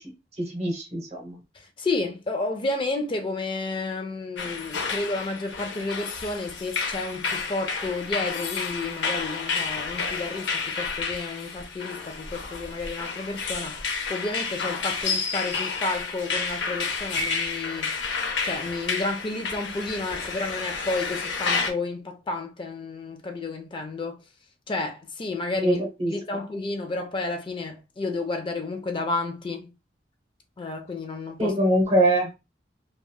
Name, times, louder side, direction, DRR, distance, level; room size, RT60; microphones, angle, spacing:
voice 1, 0.4-1.4 25.6-26.4 31.4-32.3, right 1 dB, 35° right, 0.9 m, -23 dB
voice 2, 1.5-17.9 18.4-24.2 24.7-25.8 26.1-29.7 30.6-31.6, left 3 dB, 30° left, 0.4 m, -31 dB
sound 1, 4.4-21.7, left 4 dB, 80° left, 0.6 m, -30 dB
3.2 x 2.2 x 2.2 m
head